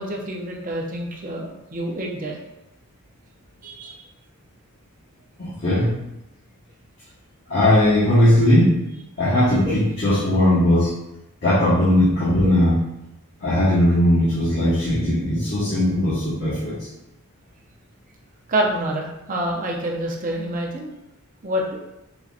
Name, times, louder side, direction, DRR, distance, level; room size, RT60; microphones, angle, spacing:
voice 1, 0.0-2.4 3.6-4.0 18.5-20.9 21.4-21.6, right 1 dB, 35° right, -1 dB, 0.7 m, -27 dB
voice 2, 5.4-5.9 7.5-8.8 9.2-10.9 11.4-12.8 13.4-16.7, left 1 dB, 45° left, -12 dB, 1.4 m, -18 dB
5.9 x 2.8 x 2.5 m, 0.88 s
head